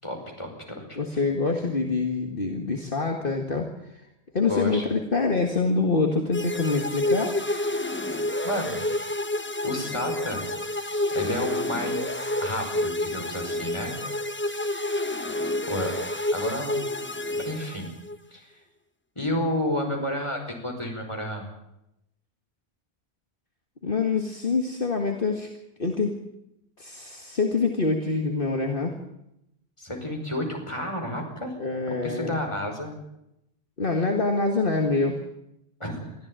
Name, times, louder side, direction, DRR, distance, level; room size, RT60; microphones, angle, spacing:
voice 1, 0.0-1.2 4.5-4.9 8.4-8.9 9.6-10.4 11.1-14.0 15.7-15.9 16.3-16.8 17.3-17.9 18.3-18.5 19.2-21.5 29.8-31.6 31.9-33.0 35.8-36.2, left 1 dB, 25° left, 2 dB, 5.3 m, -31 dB
voice 2, 1.0-4.0 4.3-7.3 23.8-25.5 25.8-26.2 26.8-29.0 31.6-32.4 33.8-35.2, left 3 dB, 55° left, 3 dB, 2.2 m, -25 dB
sound 1, 6.3-18.2, left 1 dB, 10° left, 1.1 m, -29 dB
24.0 x 14.5 x 9.0 m, 0.84 s
omnidirectional pair, 1.1 m